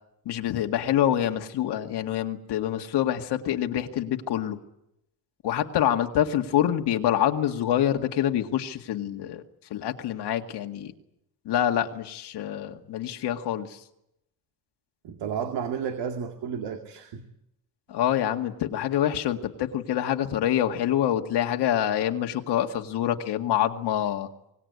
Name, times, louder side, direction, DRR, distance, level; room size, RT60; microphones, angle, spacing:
voice 1, 0.3-4.6 5.4-9.4 9.7-10.9 11.5-13.8 17.9-24.3, left 11 dB, 75° left, 4 dB, 2.0 m, -26 dB
voice 2, 15.0-17.2, right 7 dB, 80° right, 5 dB, 2.4 m, -32 dB
25.0 x 19.5 x 9.6 m, 0.84 s
cardioid pair, 120°, 40 cm